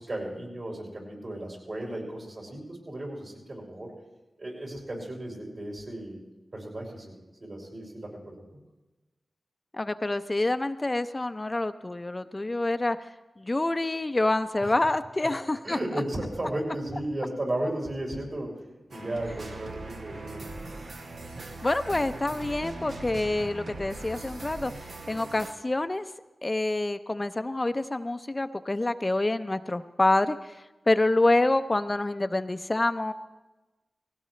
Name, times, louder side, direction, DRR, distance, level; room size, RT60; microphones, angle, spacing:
voice 1, 0.0-3.9 4.4-6.2 6.5-7.2 7.4-8.5 14.6-14.7 15.2-15.3 15.6-20.6, right 1 dB, 60° right, -2 dB, 5.4 m, -35 dB
voice 2, 9.7-15.8 21.6-26.0 26.4-33.1, left 2 dB, 30° left, 10 dB, 0.5 m, -27 dB
sound 1, 18.9-25.5, right 2 dB, 85° right, 1.3 m, -40 dB
19.5 x 16.5 x 3.2 m, 1.1 s
cardioid pair, 60°, 0 cm